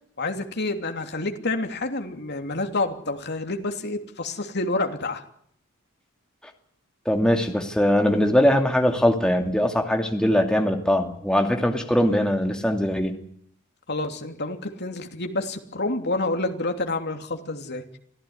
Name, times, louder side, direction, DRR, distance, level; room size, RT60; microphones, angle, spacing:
voice 1, 0.2-5.2 13.9-17.8, left 2 dB, 50° left, 5 dB, 3.0 m, -28 dB
voice 2, 7.1-13.2, equal, 5° left, 3 dB, 2.6 m, -21 dB
25.0 x 15.5 x 9.6 m, 0.65 s
head